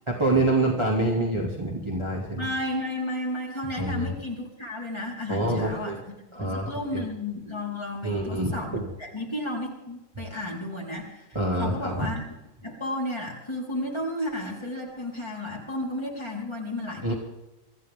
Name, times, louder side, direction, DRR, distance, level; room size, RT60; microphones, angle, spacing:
voice 1, 0.1-2.5 3.8-4.1 5.3-6.0 6.3-7.0 8.0-8.8 11.3-12.1 17.0-17.1, right 1 dB, 15° right, -2 dB, 2.7 m, -26 dB
voice 2, 2.4-6.0 6.4-12.2 12.6-17.1, left 1 dB, 15° left, -3 dB, 4.7 m, -33 dB
25.5 x 14.5 x 3.8 m, 0.98 s
omnidirectional pair, 1.7 m